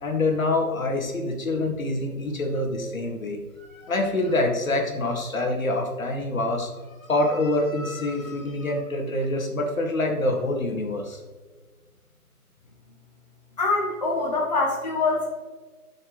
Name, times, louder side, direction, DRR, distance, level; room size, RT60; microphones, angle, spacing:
voice 1, 0.0-3.4 3.7-6.7 7.0-11.2, left 2 dB, 60° left, 1 dB, 2.0 m, -26 dB
voice 2, 13.6-15.3, left 3 dB, 25° left, -3 dB, 0.9 m, -24 dB
11.5 x 6.4 x 3.1 m, 1.4 s
hypercardioid pair, 170°, 46 cm